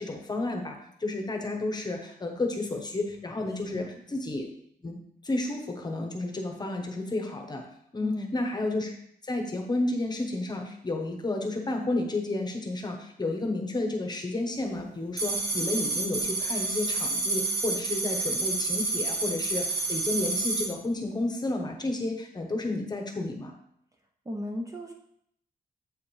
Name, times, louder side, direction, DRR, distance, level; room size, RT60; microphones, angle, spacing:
voice 1, 0.0-4.5 4.8-5.0 5.2-7.6 7.9-8.9 9.2-23.5, left 2 dB, 25° left, 2 dB, 1.0 m, -31 dB
voice 2, 3.5-3.9 8.0-8.3 24.2-24.9, equal, 20° right, 2 dB, 0.7 m, -36 dB
sound 1, 15.2-20.7, right 3 dB, 90° right, 1.2 m, -29 dB
7.9 x 5.7 x 3.2 m, 0.70 s
wide cardioid pair, 165°, 16 cm